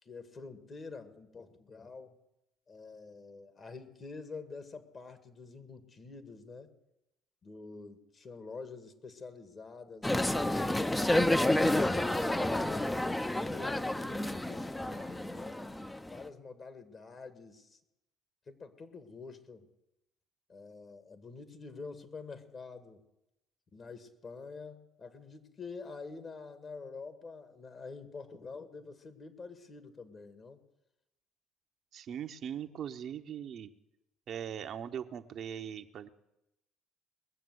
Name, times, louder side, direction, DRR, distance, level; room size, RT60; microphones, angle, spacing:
voice 1, 0.0-2.1 2.7-6.7 7.4-10.4 10.7-11.8 12.1-13.1 13.5-15.6 16.1-17.8 18.5-19.7 20.5-23.0 23.7-30.6, left 4 dB, 40° left, 10 dB, 2.0 m, -47 dB
sound 1, 10.0-16.2, left 1 dB, 10° left, 0.7 m, -30 dB
voice 2, 31.9-33.7 34.3-36.1, right 9 dB, 55° right, 7 dB, 0.8 m, -40 dB
20.5 x 7.2 x 7.9 m, 0.90 s
hypercardioid pair, 65°, 0 cm